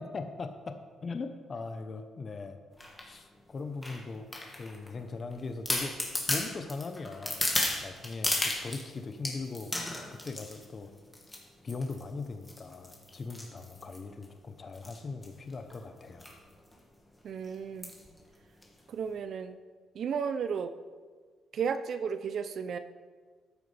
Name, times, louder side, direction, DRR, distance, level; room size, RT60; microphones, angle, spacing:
voice 1, 0.0-2.6 3.0-4.3 4.6-7.5 7.8-9.7 10.2-10.9 11.6-16.3, left 3 dB, 40° left, 7 dB, 0.8 m, -40 dB
sound 1, 2.8-3.1 3.8-4.9 5.3-5.4 5.7-8.8 9.2-10.6 11.1-11.4 11.7-12.0 12.5-14.2 14.7-15.0 15.2-15.3 15.5-15.7 16.2-16.4 16.7-16.8 17.8-18.1 18.6-18.7, left 1 dB, 15° left, 2.0 m, -33 dB
voice 2, 17.2-17.9 18.9-19.6 19.9-20.7 21.5-22.8, right 6 dB, 60° right, 10 dB, 0.5 m, -33 dB
13.5 x 9.4 x 3.4 m, 1.5 s
cardioid pair, 90°, 0 cm